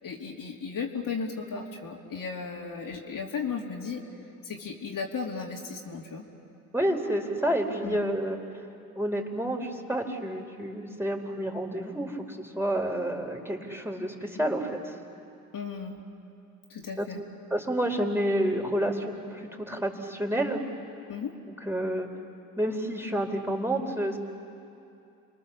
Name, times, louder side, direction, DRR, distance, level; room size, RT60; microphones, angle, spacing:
voice 1, 0.0-4.0 4.4-6.2 7.8-8.0 15.5-16.0 16.7-17.2 21.1-21.3, left 5 dB, 55° left, -1 dB, 3.2 m, -35 dB
voice 2, 6.7-8.4 9.0-14.9 17.0-17.1 17.5-20.6 21.6-22.1 22.6-24.2, right 1 dB, 5° right, 1 dB, 4.5 m, -29 dB
29.0 x 22.5 x 7.2 m, 2.7 s
hypercardioid pair, 55°, 40 cm